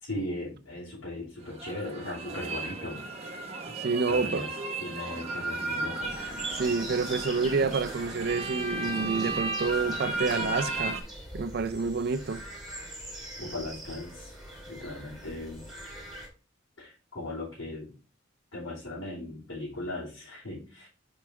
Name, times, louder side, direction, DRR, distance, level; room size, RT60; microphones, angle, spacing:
voice 1, 0.0-3.0 4.1-4.5 4.8-6.1 13.4-14.3 14.7-15.7 16.8-17.9 18.5-20.9, left 1 dB, 75° left, 3.3 m, -38 dB
sound 1, 1.4-11.0, right 2 dB, 30° right, 1.2 m, -34 dB
voice 2, 3.8-4.4 6.5-11.0 11.3-12.4, right 4 dB, 50° right, 0.4 m, -28 dB
sound 2, 6.0-16.3, right 1 dB, ahead, 2.7 m, -42 dB
7.0 x 4.8 x 3.4 m
head